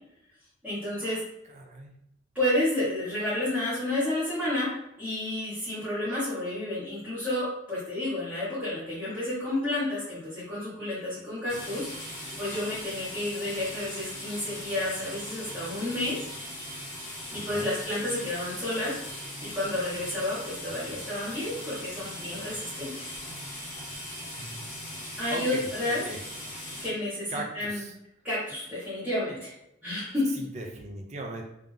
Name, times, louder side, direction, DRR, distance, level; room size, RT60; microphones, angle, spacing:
voice 1, 0.6-1.2 2.3-4.7 5.0-11.9 12.4-16.2 17.3-23.1 25.2-26.0 26.8-27.8 28.2-29.5 29.8-30.3, left 1 dB, 5° right, -13 dB, 1.4 m, -31 dB
voice 2, 1.5-1.9 17.3-17.8 24.3-24.9 25.3-25.7 26.0-26.2 27.3-27.9 30.3-31.4, right 2 dB, 35° right, 1 dB, 0.6 m, -38 dB
sound 1, 11.5-26.9, left 1 dB, 35° left, 1.4 m, -40 dB
3.7 x 2.9 x 3.4 m, 0.84 s
head